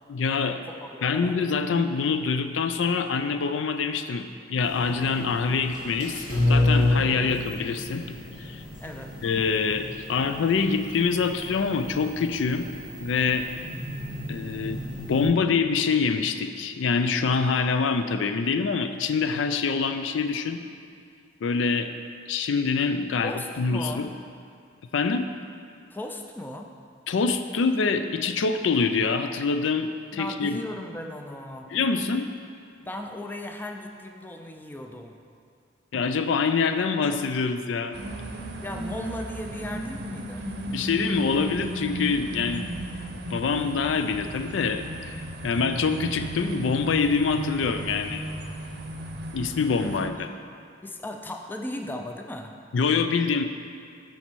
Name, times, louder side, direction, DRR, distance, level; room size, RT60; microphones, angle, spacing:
voice 1, 0.1-0.6 1.0-8.6 9.2-12.7 13.0-13.5 14.3-14.8 15.1-20.6 21.4-21.9 22.3-24.1 24.9-25.3 27.1-30.6 31.7-32.3 35.9-38.0 40.6-42.8 43.1-48.3 48.7-48.8 49.3-50.3 52.7-53.4, left 5 dB, 85° left, 9 dB, 0.4 m, -25 dB
voice 2, 0.7-1.4 8.8-9.1 23.2-24.1 25.9-26.7 30.1-31.7 32.8-35.1 38.6-40.5 50.8-52.5, left 1 dB, 10° left, 3 dB, 0.4 m, -37 dB
sound 1, 4.6-15.2, left 1 dB, 70° left, 1.6 m, -30 dB
sound 2, 37.9-50.1, right 1 dB, 60° right, 0.7 m, -35 dB
9.9 x 4.2 x 4.6 m, 2.3 s
head